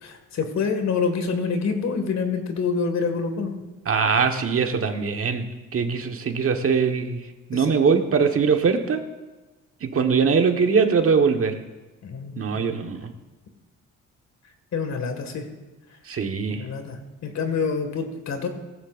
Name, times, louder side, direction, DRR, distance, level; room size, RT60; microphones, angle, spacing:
voice 1, 0.0-3.6 7.5-7.8 12.0-12.4 12.7-12.8 14.7-15.4 16.5-18.5, left 5 dB, 60° left, 6 dB, 2.0 m, -27 dB
voice 2, 3.8-5.5 5.7-7.2 7.5-9.0 9.8-11.6 12.4-13.1 16.0-16.6, right 5 dB, 45° right, 5 dB, 1.4 m, -22 dB
17.5 x 14.5 x 2.6 m, 1.1 s
cardioid pair, 90°, 30 cm